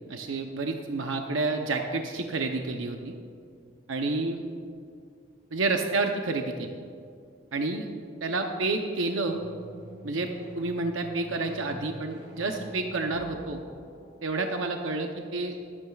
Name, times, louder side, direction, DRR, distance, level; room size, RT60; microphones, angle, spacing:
voice 1, 0.1-3.1 3.9-4.4 5.5-6.7 7.5-7.9 8.2-9.4 10.0-10.3 10.5-13.6 14.2-15.5, right 3 dB, 85° right, 4 dB, 0.7 m, -29 dB
sound 1, 9.2-14.8, right 1 dB, 55° right, 2.4 m, -46 dB
23.5 x 9.8 x 2.4 m, 2.3 s
head